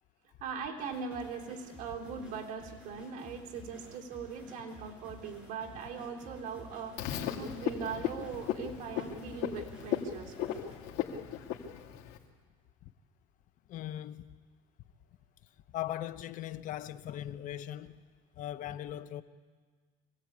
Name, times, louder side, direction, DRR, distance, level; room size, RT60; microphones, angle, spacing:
voice 1, 0.4-10.4, right 6 dB, 55° right, 3.3 m, -40 dB
sound 1, 0.8-10.8, left 1 dB, 5° right, 6.7 m, -52 dB
Frog, 7.0-12.2, left 10 dB, 70° left, 2.6 m, -36 dB
voice 2, 13.7-14.4 15.7-18.0 18.4-19.2, left 12 dB, 50° left, 1.0 m, -39 dB
26.0 x 17.5 x 8.6 m
cardioid pair, 140°, 17 cm